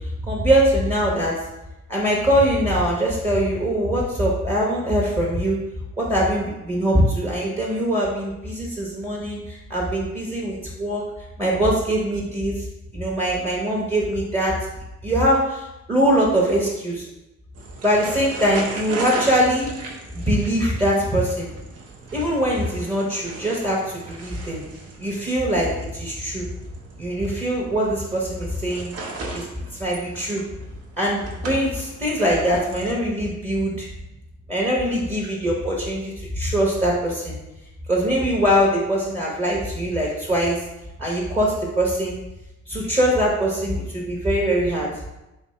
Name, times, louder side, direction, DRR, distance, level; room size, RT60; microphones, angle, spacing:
voice 1, 0.2-1.3 1.9-5.6 6.0-11.0 11.4-12.5 12.9-14.5 15.0-17.1 17.8-19.7 20.1-21.5 22.1-24.6 25.0-26.5 27.0-28.9 29.3-29.5 29.8-30.4 31.0-33.9 34.5-37.4 37.9-40.6 41.0-42.2 42.7-44.9, equal, 20° right, -4 dB, 1.0 m, -22 dB
sound 1, 17.6-32.9, right 3 dB, 55° right, 0.8 m, -37 dB
3.4 x 2.8 x 4.2 m, 0.94 s
cardioid pair, 90°, 30 cm